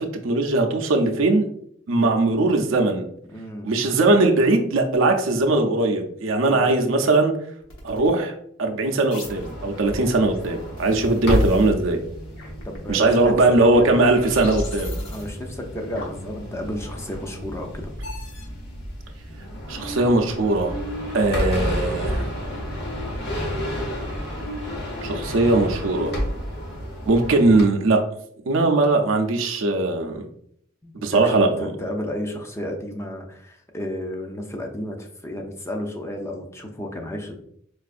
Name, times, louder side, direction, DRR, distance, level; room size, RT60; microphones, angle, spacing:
voice 1, 0.0-1.5 1.9-3.1 3.6-7.3 7.8-8.3 8.6-12.0 12.9-14.9 19.7-20.7 21.1-22.3 25.0-26.1 27.1-28.0 28.5-30.3 31.0-31.7, right 2 dB, 90° right, 3 dB, 0.5 m, -20 dB
voice 2, 3.3-3.7 6.4-6.7 12.6-13.3 13.8-14.3 15.1-17.9 30.8-37.3, left 1 dB, 15° left, 2 dB, 0.5 m, -33 dB
sound 1, 6.6-6.8 7.6-8.1 9.1-9.5 10.3-11.7 12.4-13.0 13.6-15.3 16.0-16.3 16.8-17.2 18.0-18.5, left 2 dB, 85° left, 1.0 m, -41 dB
sound 2, 9.2-27.6, equal, 60° left, 0.9 m, -30 dB
4.5 x 2.4 x 2.4 m, 0.68 s
head